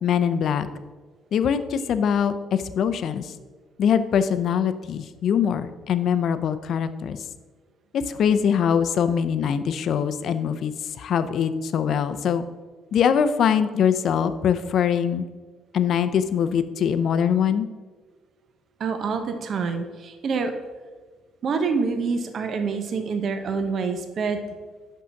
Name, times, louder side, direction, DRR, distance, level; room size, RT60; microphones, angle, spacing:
voice 1, 0.0-0.7 1.3-3.3 3.8-7.2 7.9-12.4 12.9-15.2 15.7-17.7, left 8 dB, 55° left, 11 dB, 0.5 m, -23 dB
voice 2, 18.8-20.5 21.4-24.4, right 5 dB, 45° right, 7 dB, 0.7 m, -26 dB
6.2 x 5.6 x 5.7 m, 1.4 s
cardioid pair, 135°, 0 cm